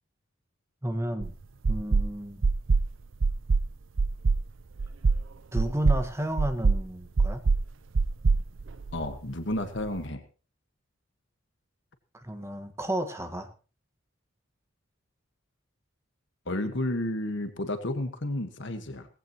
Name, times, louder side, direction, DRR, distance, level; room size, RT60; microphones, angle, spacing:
voice 1, 0.8-1.3 1.7-2.4 5.5-7.4 12.1-13.5, right 1 dB, 15° right, 7 dB, 1.6 m, -32 dB
sound 1, 1.2-1.3 1.6-2.1 2.4-2.9 3.2-3.7 4.0-4.4 4.8-5.2 5.6-6.0 6.4-6.8 7.2-7.6 7.9-9.2, right 4 dB, 65° right, 0.6 m, -23 dB
voice 2, 8.9-10.2 16.5-19.1, left 1 dB, 60° left, 8 dB, 1.6 m, -31 dB
18.0 x 15.5 x 3.0 m, 0.36 s
head